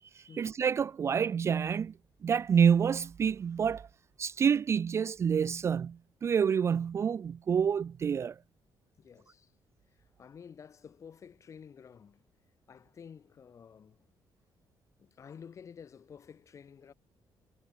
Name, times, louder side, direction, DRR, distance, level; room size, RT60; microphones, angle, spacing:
voice 1, 0.2-1.9 2.2-3.9 4.2-8.4, right 7 dB, 35° right, 0.5 m, -28 dB
voice 2, 9.0-9.5 10.0-12.2 12.7-14.1 15.0-16.9, left 7 dB, 40° left, 6.3 m, -51 dB
cardioid pair, 165°, 8 cm